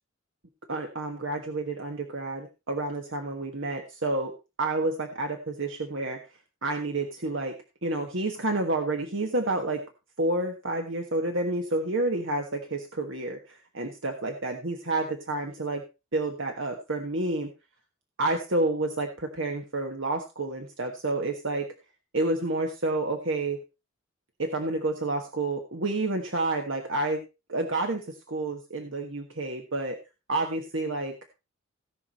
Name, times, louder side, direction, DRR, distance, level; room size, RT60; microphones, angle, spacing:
voice 1, 0.7-4.3 4.6-6.2 6.6-7.5 7.8-9.8 10.2-15.8 16.1-17.5 18.2-21.7 22.1-23.6 24.4-27.2 27.5-30.0 30.3-31.1, right 2 dB, 65° right, 4 dB, 1.4 m, -29 dB
17.0 x 6.0 x 4.2 m, 0.28 s
head